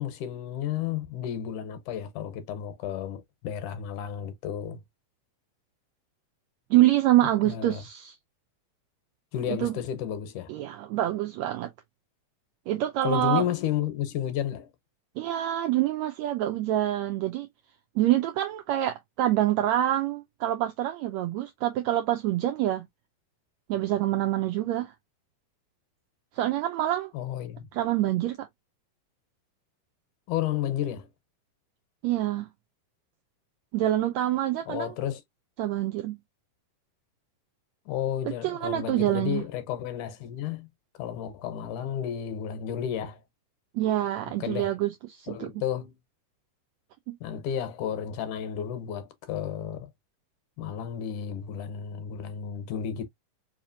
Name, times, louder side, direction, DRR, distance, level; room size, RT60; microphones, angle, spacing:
voice 1, 0.0-4.8 7.5-7.8 9.3-10.5 13.0-14.7 27.1-27.7 30.3-31.1 34.7-35.2 37.9-40.7 41.0-43.2 44.4-44.7 45.3-45.9 47.2-49.9 50.6-53.1, left 10 dB, 75° left, 2.2 m, -32 dB
voice 2, 6.7-8.1 9.5-9.8 10.5-11.7 12.7-13.4 15.2-17.5 18.0-22.9 23.7-24.9 26.3-27.1 27.7-28.5 32.0-32.5 33.7-34.9 35.6-36.2 38.4-39.4 43.7-45.5 47.1-47.2, right 13 dB, 90° right, 1.6 m, -26 dB
4.9 x 2.8 x 2.6 m
omnidirectional pair, 3.7 m